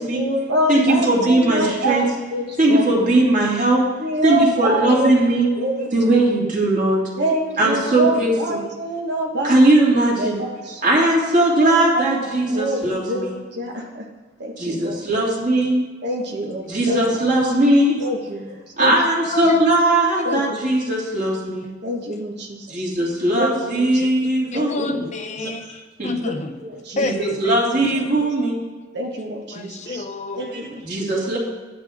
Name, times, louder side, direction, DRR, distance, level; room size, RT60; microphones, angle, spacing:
voice 1, 0.0-3.1 4.0-5.2 5.6-6.2 7.2-9.6 10.2-10.8 11.7-11.8 12.5-14.0 14.4-15.0 16.0-17.0 18.0-18.9 20.2-20.6 21.8-22.6 23.3-23.8 24.5-24.9 25.4-25.6 26.3-26.4 26.6-27.1 28.9-30.0 30.4-31.1, right 1 dB, 60° right, 0 dB, 1.2 m, -26 dB
voice 2, 0.7-2.1 2.6-3.9 4.2-5.5 5.9-7.1 7.6-8.6 9.4-10.4 10.8-13.3 14.6-15.8 16.7-18.0 18.8-21.7 22.7-25.0 26.0-26.1 27.0-28.6 30.8-31.4, right 1 dB, 45° right, -4 dB, 2.7 m, -19 dB
voice 3, 16.6-17.1 17.8-17.9 19.3-19.7 20.3-20.5 24.0-24.1 24.5-26.6 27.0-27.6 29.5-30.6, left 2 dB, 40° left, 7 dB, 0.6 m, -29 dB
11.0 x 10.5 x 3.6 m, 1.4 s
head